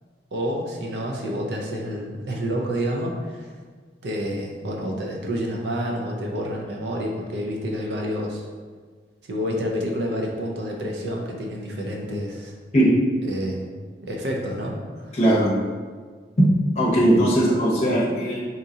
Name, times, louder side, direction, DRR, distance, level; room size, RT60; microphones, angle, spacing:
voice 1, 0.3-3.5 4.0-8.5 9.3-12.5 13.3-13.7 14.0-15.2, equal, 75° right, 0 dB, 0.5 m, -28 dB
voice 2, 15.1-15.5 16.8-18.4, right 1 dB, 40° left, -5 dB, 0.7 m, -19 dB
3.6 x 2.9 x 2.7 m, 1.5 s
head